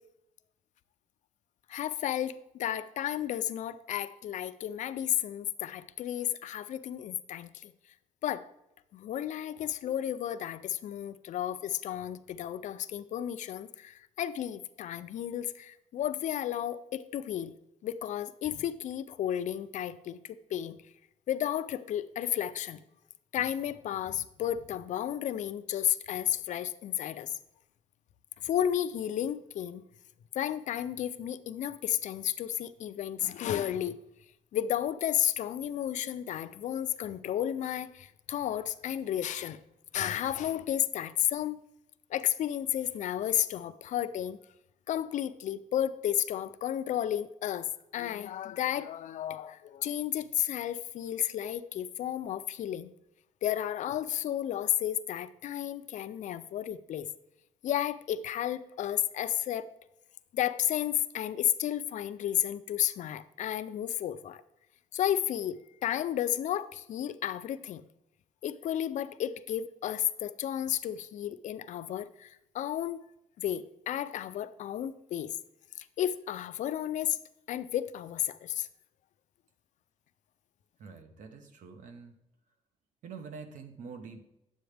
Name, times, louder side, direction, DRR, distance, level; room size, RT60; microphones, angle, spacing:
voice 1, 1.7-7.7 8.2-8.5 8.9-17.5 17.8-20.8 21.3-22.8 23.3-27.3 28.4-29.8 30.3-34.0 34.5-39.6 39.9-41.6 42.1-44.4 44.9-52.9 53.4-57.1 57.6-59.7 60.3-64.4 64.9-67.8 68.4-73.0 73.4-75.4 75.8-77.2 77.5-78.7, left 11 dB, 70° left, 12 dB, 0.5 m, -32 dB
voice 2, 80.8-82.1 83.0-84.2, right 5 dB, 75° right, 7 dB, 1.0 m, -46 dB
10.5 x 7.8 x 3.3 m, 0.87 s
wide cardioid pair, 175°, 13 cm